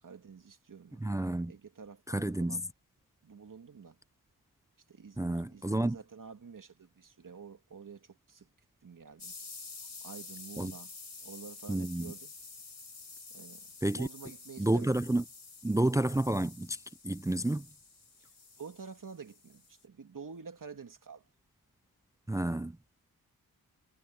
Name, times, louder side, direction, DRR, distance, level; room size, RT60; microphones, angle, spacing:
voice 1, 0.0-2.7 3.2-4.0 4.9-8.5 8.8-9.3 10.0-10.9 11.2-12.3 13.3-13.7 13.9-14.9 18.6-21.2, right 5 dB, 60° right, 2.8 m, -49 dB
voice 2, 1.0-1.5 2.1-2.6 5.2-6.0 10.6-10.7 11.7-12.1 13.8-14.1 14.6-15.2 15.6-16.8 17.0-17.7 22.3-22.8, right 1 dB, 10° right, 0.5 m, -30 dB
sound 1, 9.2-19.8, left 4 dB, 45° left, 6.1 m, -49 dB
cardioid pair, 70°, 37 cm